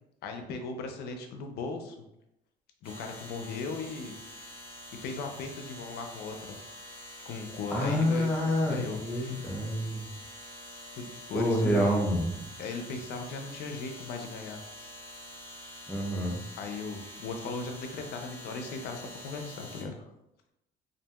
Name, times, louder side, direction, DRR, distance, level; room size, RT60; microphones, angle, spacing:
voice 1, 0.2-2.0 2.8-4.2 5.0-6.6 7.2-8.3 8.6-9.3 11.0-11.9 12.6-14.6 16.6-19.9, left 4 dB, 75° left, 5 dB, 0.5 m, -37 dB
sound 1, 2.8-19.8, left 1 dB, 35° left, 1.4 m, -46 dB
voice 2, 7.7-10.1 11.3-12.3 15.9-16.4, equal, 5° left, -2 dB, 0.6 m, -27 dB
2.7 x 2.6 x 2.3 m, 0.86 s
cardioid pair, 110°, 17 cm